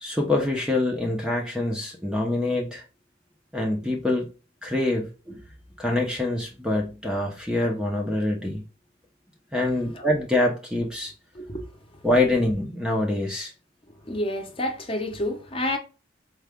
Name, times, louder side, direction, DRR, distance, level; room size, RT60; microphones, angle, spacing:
voice 1, 0.0-2.8 3.5-4.3 4.6-5.4 5.8-8.6 9.5-11.1 12.0-13.5, left 2 dB, 5° right, 0.6 m, -25 dB
voice 2, 14.1-15.8, left 1 dB, 30° left, 0.8 m, -29 dB
4.6 x 2.3 x 3.5 m
head